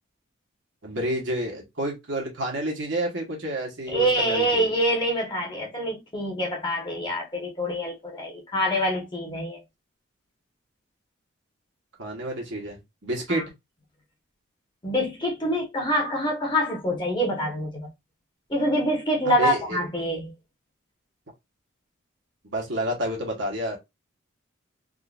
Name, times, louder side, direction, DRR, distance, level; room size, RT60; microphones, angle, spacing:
voice 1, 0.8-4.7 12.0-13.4 19.3-19.8 22.5-23.8, right 1 dB, 65° right, 1.2 m, -29 dB
voice 2, 3.9-9.6 13.3-13.4 14.8-17.9 18.5-20.3, equal, 20° left, 1.2 m, -25 dB
3.7 x 2.5 x 2.4 m
head